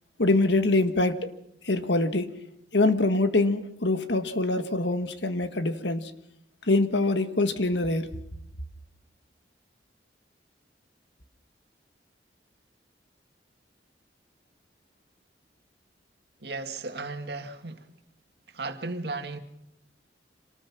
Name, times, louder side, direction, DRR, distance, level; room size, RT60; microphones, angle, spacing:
voice 1, 0.2-1.2 1.6-2.3 2.7-6.1 6.7-8.1, left 2 dB, 85° left, 1.7 m, -24 dB
voice 2, 16.4-17.9 18.5-19.4, right 3 dB, 65° right, 2.0 m, -35 dB
26.5 x 19.5 x 6.2 m
head